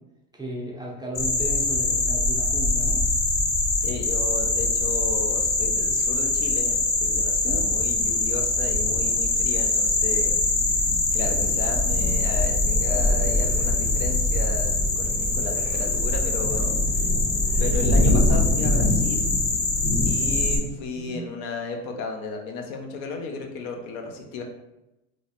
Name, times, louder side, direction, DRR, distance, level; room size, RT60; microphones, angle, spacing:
voice 1, 0.3-3.1 7.4-7.7 20.5-21.2, right 1 dB, 10° right, -3 dB, 0.4 m, -35 dB
sound 1, 1.1-20.6, left 2 dB, 30° left, 0.6 m, -23 dB
voice 2, 3.8-10.3 11.1-16.7 17.0-17.1 17.6-19.3 20.0-24.4, left 4 dB, 70° left, 3 dB, 0.6 m, -34 dB
3.1 x 2.0 x 2.7 m, 0.93 s
supercardioid pair, 105°, 40 cm